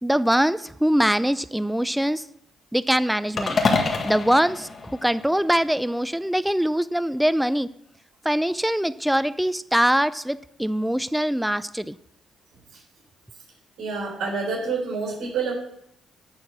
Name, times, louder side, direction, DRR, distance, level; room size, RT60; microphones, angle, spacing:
voice 1, 0.0-2.2 2.7-3.6 4.0-7.7 8.2-12.0, equal, 5° right, 15 dB, 0.4 m, -23 dB
sound 1, 3.4-5.7, left 4 dB, 45° left, 1.6 m, -26 dB
voice 2, 13.8-15.5, right 4 dB, 80° right, -1 dB, 3.6 m, -28 dB
10.5 x 4.5 x 7.5 m, 0.75 s
cardioid pair, 90°, 0 cm